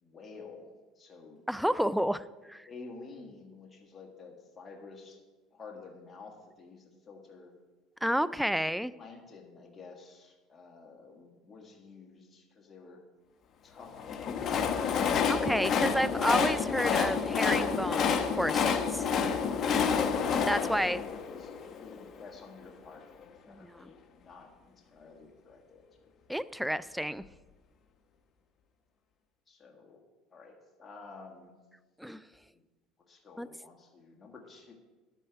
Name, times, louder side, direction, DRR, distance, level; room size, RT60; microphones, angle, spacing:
voice 1, 0.0-1.4 1.9-2.0 2.7-5.2 5.5-7.5 9.0-13.0 13.6-14.9 19.7-26.1 29.5-30.0 30.3-31.5 32.5-32.6 33.1-34.7, left 4 dB, 25° left, 0 dB, 1.7 m, -51 dB
voice 2, 1.5-2.2 2.5-2.7 8.0-8.9 15.3-19.0 20.4-21.0 23.5-23.9 26.3-27.2 32.0-32.2 33.4-33.5, equal, ahead, 17 dB, 0.3 m, -30 dB
Train, 13.9-22.1, left 6 dB, 40° left, 0.9 m, -29 dB
11.0 x 9.0 x 4.6 m, 1.2 s
supercardioid pair, 120°, 0 cm